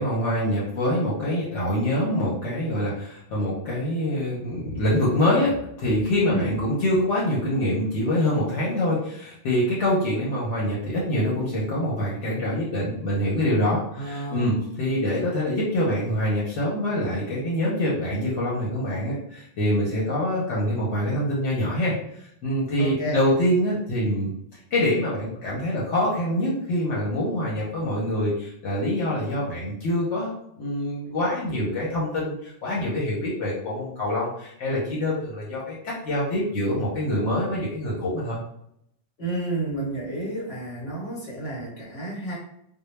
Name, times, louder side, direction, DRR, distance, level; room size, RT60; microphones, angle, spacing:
voice 1, 0.0-30.3 30.6-38.4, left 1 dB, 80° left, -5 dB, 1.0 m, -25 dB
voice 2, 14.0-14.6 22.8-23.2 39.2-42.4, right 2 dB, 60° left, -4 dB, 1.1 m, -30 dB
2.2 x 2.1 x 3.1 m, 0.74 s
omnidirectional pair, 1.2 m